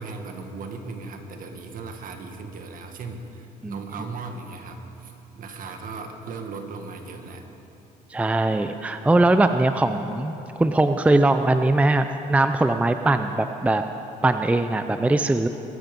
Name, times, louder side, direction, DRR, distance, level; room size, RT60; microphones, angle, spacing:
voice 1, 0.0-7.4, right 4 dB, 55° right, 5 dB, 1.7 m, -37 dB
voice 2, 8.1-13.8 14.2-15.5, right 2 dB, 10° right, 8 dB, 0.5 m, -21 dB
21.5 x 11.5 x 5.3 m, 3.0 s
cardioid pair, 110°, 17 cm